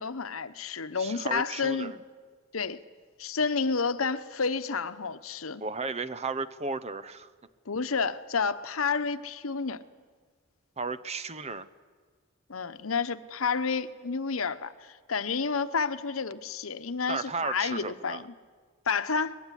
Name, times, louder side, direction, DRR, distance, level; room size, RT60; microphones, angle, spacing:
voice 1, 0.0-1.9 2.5-2.8 3.2-5.6 7.7-9.8 12.5-18.2 18.9-19.4, left 5 dB, 85° left, 1.0 m, -30 dB
voice 2, 1.0-2.0 5.6-7.3 10.8-11.7 17.1-18.2, right 4 dB, 30° right, 0.9 m, -34 dB
23.0 x 21.0 x 10.0 m
head